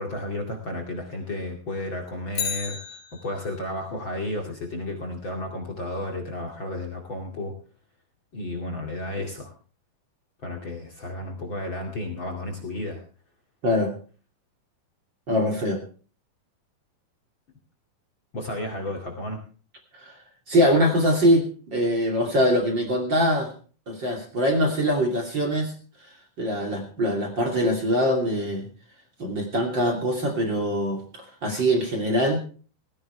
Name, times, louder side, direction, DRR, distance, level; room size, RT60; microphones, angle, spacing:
voice 1, 0.0-2.8 3.2-7.5 8.3-9.5 10.4-13.0 18.3-19.4, left 1 dB, 35° left, 1 dB, 2.7 m, -32 dB
Bicycle, 2.3-3.7 12.0-12.1, left 8 dB, 75° left, 3.6 m, -33 dB
voice 2, 15.3-15.8 20.0-20.2 20.5-23.5 23.9-25.7 26.4-28.7 29.2-31.0 31.4-32.4, equal, 35° right, 2 dB, 3.0 m, -23 dB
18.0 x 15.5 x 3.3 m, 0.38 s
omnidirectional pair, 4.2 m